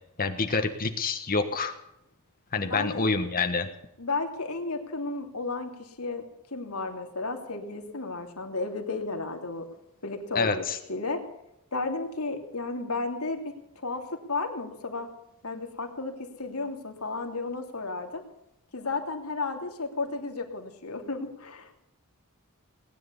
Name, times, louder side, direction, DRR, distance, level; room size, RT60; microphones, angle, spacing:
voice 1, 0.2-1.7 2.5-3.7 10.3-10.8, left 4 dB, 40° left, 6 dB, 1.3 m, -27 dB
voice 2, 2.6-3.1 4.0-6.2 6.5-9.7 10.0-10.6 10.9-11.2 11.7-13.4 13.8-15.1 15.4-18.2 18.7-21.8, left 3 dB, 75° left, 4 dB, 3.0 m, -33 dB
19.5 x 10.5 x 7.0 m, 0.85 s
head